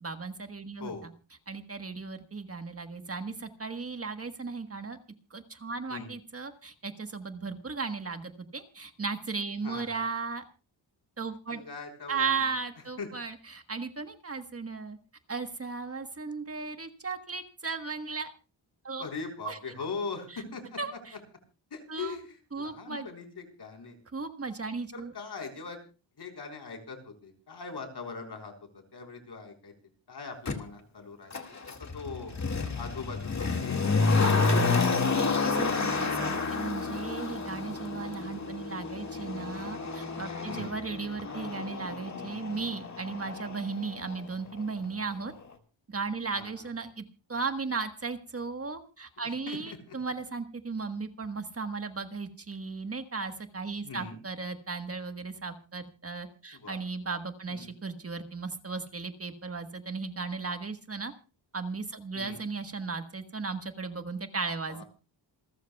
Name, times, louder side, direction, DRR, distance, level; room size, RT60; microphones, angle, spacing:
voice 1, 0.0-0.9 1.5-5.0 5.3-10.4 11.2-11.6 12.1-15.0 15.3-18.3 18.8-19.1 19.4-19.6 20.3-20.4 20.8-21.2 21.9-22.2 22.5-23.0 24.1-25.1 35.1-45.3 45.9-47.0 47.3-61.1 61.5-64.8, right 4 dB, 30° right, 7 dB, 1.3 m, -36 dB
voice 2, 9.6-10.0 11.5-12.5 13.0-13.1 19.0-20.8 21.7-24.0 24.9-25.8 26.2-28.5 28.9-29.7 30.1-31.4 31.8-32.3 32.8-34.9 40.5-40.8 46.3-46.7 49.5-50.0 53.8-54.2 56.5-56.8 57.5-57.7 62.1-62.4 64.7-64.8, left 4 dB, 60° left, 4 dB, 4.1 m, -41 dB
Motor vehicle (road), 30.5-30.6 31.3-44.2 44.5-44.6, left 4 dB, 35° left, 2.0 m, -30 dB
27.5 x 13.0 x 2.3 m, 0.34 s
wide cardioid pair, 145°, 46 cm